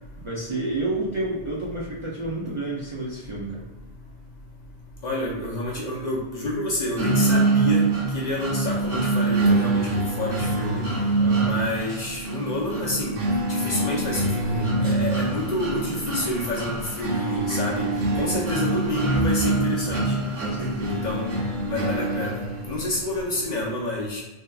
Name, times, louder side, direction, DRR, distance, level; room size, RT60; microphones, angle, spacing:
voice 1, 0.2-3.6 11.2-11.6 18.1-18.4 20.4-21.0, right 2 dB, 40° right, -6 dB, 0.5 m, -30 dB
voice 2, 5.0-7.9 8.1-9.9 10.2-10.8 11.4-13.2 13.5-17.9 18.2-20.1 20.9-22.4 22.6-24.2, left 1 dB, 50° left, -4 dB, 0.7 m, -28 dB
sound 1, 7.0-22.9, right 2 dB, 70° right, 1.0 m, -25 dB
3.5 x 2.7 x 2.3 m, 1.1 s
omnidirectional pair, 1.0 m